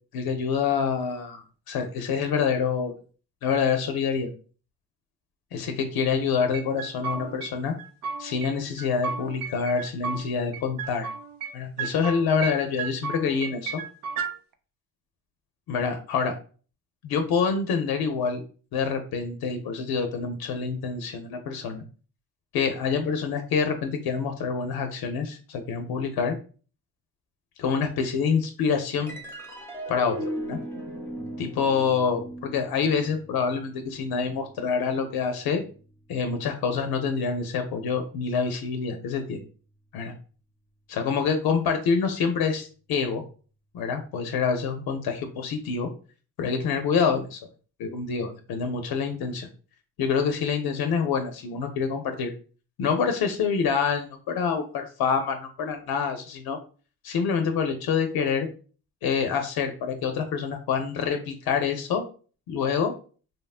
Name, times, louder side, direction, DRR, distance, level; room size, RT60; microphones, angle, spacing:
voice 1, 0.1-2.9 3.4-4.3 5.5-7.7 8.2-11.1 11.5-13.8 15.7-16.4 17.0-18.4 18.7-21.8 22.5-26.4 27.6-29.1 29.9-30.2 30.4-30.6 31.4-35.6 36.1-39.4 39.9-40.1 40.9-43.2 43.7-45.9 46.4-47.4 47.8-49.5 50.0-52.3 52.8-56.6 57.0-58.5 59.0-62.0 62.5-62.9, left 6 dB, 80° left, 5 dB, 0.5 m, -26 dB
sound 1, 6.5-7.5 7.8-8.5 8.8-10.2 10.5-11.5 11.8-12.5 12.8-14.3, right 5 dB, 65° right, 0.5 m, -33 dB
sound 2, 29.1-35.7, right 1 dB, 5° left, 0.7 m, -38 dB
2.9 x 2.1 x 2.3 m, 0.38 s
cardioid pair, 90°, 36 cm